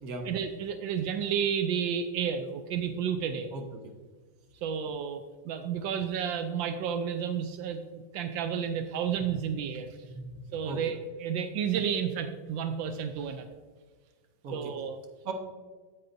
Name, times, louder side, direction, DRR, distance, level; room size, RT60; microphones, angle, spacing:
voice 1, 0.2-3.5 4.6-10.0 10.5-13.6 14.5-15.0, right 7 dB, 85° right, 8 dB, 1.3 m, -31 dB
voice 2, 10.0-10.8 14.4-14.7 15.2-15.3, right 3 dB, 55° right, 2 dB, 1.5 m, -38 dB
9.7 x 7.9 x 2.6 m, 1.4 s
omnidirectional pair, 2.0 m